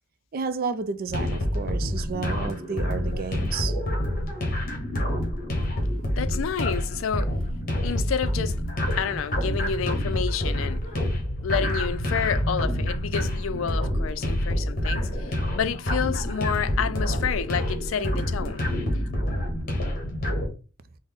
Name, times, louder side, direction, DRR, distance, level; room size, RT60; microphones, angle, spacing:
voice 1, 0.3-3.8, right 5 dB, 50° right, 0.4 m, -31 dB
sound 1, 1.1-20.5, left 1 dB, 45° left, 1.2 m, -27 dB
voice 2, 6.1-7.3 7.8-8.6 9.0-10.8 11.4-18.7, left 7 dB, 85° left, 0.4 m, -29 dB
4.0 x 2.0 x 3.5 m
head